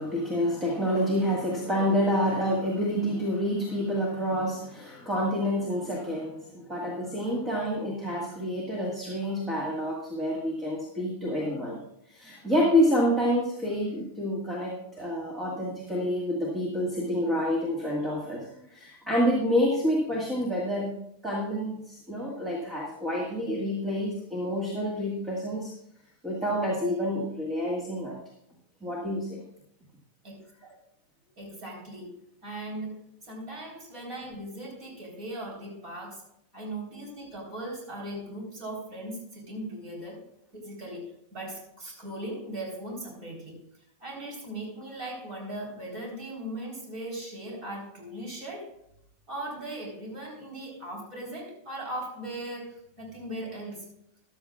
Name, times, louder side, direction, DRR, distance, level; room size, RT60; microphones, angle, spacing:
voice 1, 0.0-11.8 12.1-18.4 18.7-20.9 21.2-25.7 26.2-28.2 28.8-29.4, equal, 10° right, -2 dB, 1.6 m, -28 dB
voice 2, 30.2-30.8 31.4-32.2 32.4-33.0 33.3-36.2 36.5-40.2 40.5-43.6 44.0-48.7 49.3-53.9, right 1 dB, 30° right, -1 dB, 3.8 m, -38 dB
14.5 x 12.0 x 2.4 m, 0.77 s
supercardioid pair, 180°, 0 cm